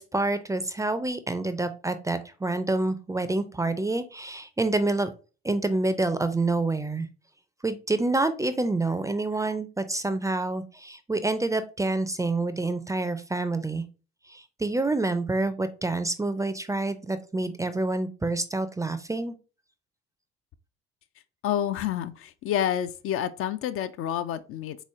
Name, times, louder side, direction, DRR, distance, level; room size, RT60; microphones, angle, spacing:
voice 1, 0.0-5.1 5.4-7.1 7.6-13.8 14.6-19.3, right 2 dB, 10° right, 0.5 m, -27 dB
voice 2, 21.4-24.8, left 10 dB, 45° left, 0.4 m, -29 dB
3.9 x 3.1 x 3.5 m
figure-of-eight pair, 50°, 31 cm